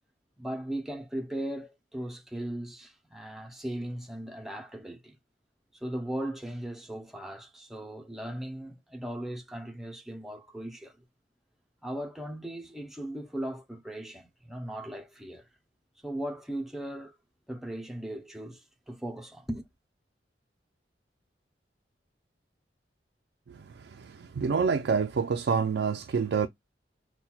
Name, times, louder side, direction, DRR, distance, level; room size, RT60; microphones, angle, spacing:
voice 1, 0.4-5.2 5.7-11.1 11.8-15.5 16.0-17.2 17.5-19.7, right 1 dB, ahead, 0.5 m, -38 dB
voice 2, 23.5-26.5, right 5 dB, 70° right, 0.4 m, -28 dB
5.6 x 2.2 x 2.2 m
head